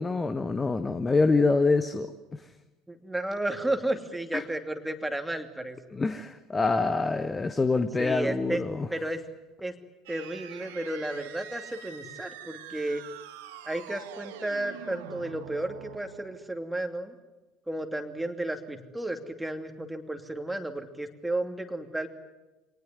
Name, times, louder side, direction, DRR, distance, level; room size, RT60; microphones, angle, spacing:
voice 1, 0.0-2.4 4.3-4.4 5.9-8.9, left 3 dB, 20° left, 11 dB, 1.2 m, -26 dB
voice 2, 2.9-5.8 8.0-8.6 8.9-9.2 9.6-9.7 10.1-13.0 13.6-17.1 17.7-22.1, right 1 dB, 5° right, 5 dB, 2.8 m, -33 dB
sound 1, 10.1-16.6, right 10 dB, 65° right, 1.8 m, -45 dB
25.5 x 19.0 x 9.7 m, 1.1 s
figure-of-eight pair, 60°, 0 cm